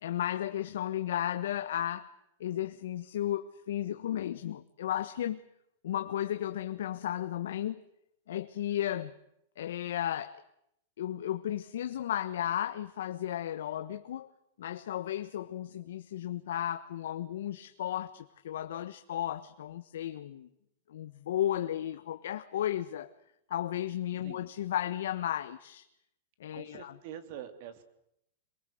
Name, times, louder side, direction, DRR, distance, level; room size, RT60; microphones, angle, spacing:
voice 1, 0.0-2.1 2.4-5.4 5.8-7.8 8.3-9.1 9.6-10.4 11.0-14.3 14.6-20.5 20.9-23.1 23.5-25.8 26.4-27.0, left 11 dB, 75° left, 1.3 m, -34 dB
voice 2, 26.5-27.8, right 10 dB, 50° right, 3.3 m, -45 dB
26.5 x 23.0 x 7.9 m
supercardioid pair, 155°, 0 cm